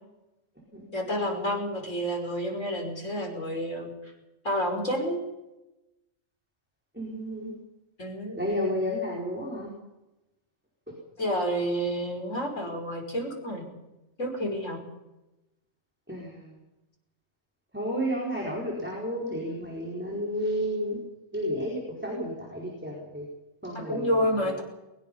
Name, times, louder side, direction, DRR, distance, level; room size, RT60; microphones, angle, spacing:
voice 1, 0.9-3.9 4.4-5.2 8.0-8.4 11.2-13.7 14.2-14.8 23.7-24.6, equal, 80° left, 1 dB, 6.1 m, -29 dB
voice 2, 6.9-7.5 8.4-9.7 16.1-16.6 17.7-21.0 21.3-23.2 23.6-24.2, equal, 10° right, -3 dB, 4.7 m, -31 dB
22.5 x 21.5 x 5.6 m, 0.98 s
omnidirectional pair, 1.3 m